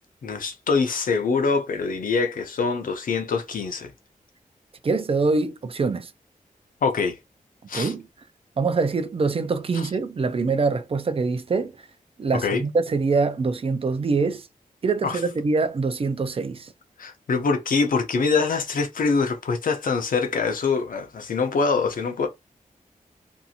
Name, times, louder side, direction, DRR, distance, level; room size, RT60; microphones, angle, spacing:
voice 1, 0.2-3.9 6.8-7.2 7.7-7.9 9.7-9.9 12.4-12.6 15.0-15.2 17.0-22.3, left 4 dB, 70° left, 0.6 m, -24 dB
voice 2, 4.8-6.1 7.7-8.1 8.6-11.7 12.2-14.5 14.8-16.7, right 4 dB, 40° right, 0.4 m, -24 dB
2.6 x 2.5 x 2.7 m
wide cardioid pair, 130°, 14 cm